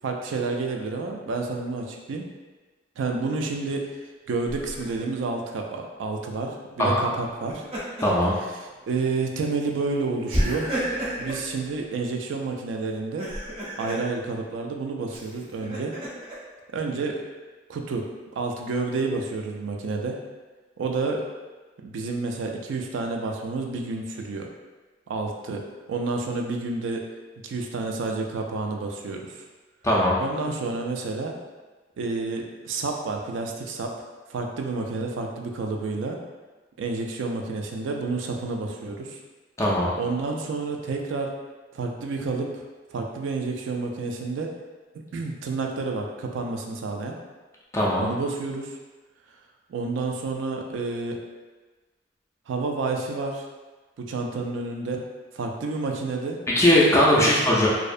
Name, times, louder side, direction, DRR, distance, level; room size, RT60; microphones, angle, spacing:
voice 1, 0.0-2.3 3.0-3.9 4.3-7.7 8.6-13.3 13.8-15.9 16.7-17.2 17.7-18.1 18.4-20.2 20.8-21.2 21.8-24.5 25.1-27.0 27.4-29.4 30.2-31.3 32.0-33.9 34.3-36.2 36.8-39.2 40.0-41.3 41.7-42.6 42.9-44.5 45.1-47.2 48.0-48.8 49.7-51.2 52.5-53.4 54.1-55.0 55.3-56.4 57.1-57.3, right 3 dB, 85° right, 2 dB, 0.3 m, -29 dB
Laughter, 4.5-5.0 7.3-8.2 8.7-8.8 10.3-11.5 13.0-14.0 15.1-16.4, equal, 30° right, 0.6 m, -30 dB
voice 2, 8.0-8.4 29.8-30.2 39.6-39.9 47.7-48.1 56.5-57.7, left 1 dB, 15° left, -5 dB, 0.3 m, -19 dB
2.5 x 2.0 x 2.4 m, 1.3 s
head